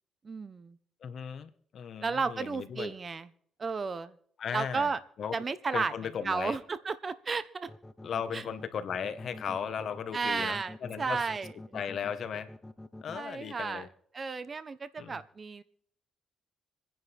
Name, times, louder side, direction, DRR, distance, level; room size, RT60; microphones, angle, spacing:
voice 1, 0.2-0.8 2.0-3.3 3.6-4.1 4.5-5.0 5.3-5.9 6.2-7.7 8.3-8.4 10.1-11.5 13.1-13.9 14.1-15.6, right 4 dB, 35° right, 14 dB, 1.2 m, -33 dB
voice 2, 1.0-2.9 4.4-4.9 5.2-5.3 5.7-6.6 8.0-11.2 11.7-12.5 13.0-13.9 15.0-15.2, left 7 dB, 60° left, 10 dB, 1.6 m, -36 dB
sound 1, 7.7-13.2, left 1 dB, 10° left, 1.2 m, -46 dB
26.5 x 10.5 x 3.7 m, 0.63 s
cardioid pair, 90°, 0 cm